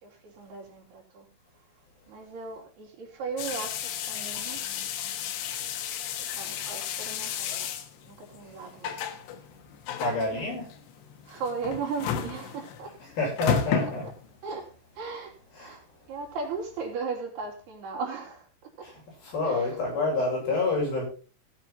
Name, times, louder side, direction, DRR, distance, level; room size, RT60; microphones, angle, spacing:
voice 1, 0.0-1.3 2.1-4.6 6.2-7.7 8.0-9.2 10.3-10.4 11.2-13.0 13.8-14.1 14.4-18.9 19.4-19.8, right 5 dB, 70° right, -1 dB, 4.9 m, -37 dB
sound 1, 3.4-14.5, left 9 dB, 85° left, 3.5 m, -33 dB
voice 2, 10.0-10.7 13.2-14.0 15.6-15.7 19.3-21.1, left 2 dB, 60° left, -3 dB, 8.5 m, -27 dB
17.5 x 7.5 x 4.1 m, 0.36 s
omnidirectional pair, 4.9 m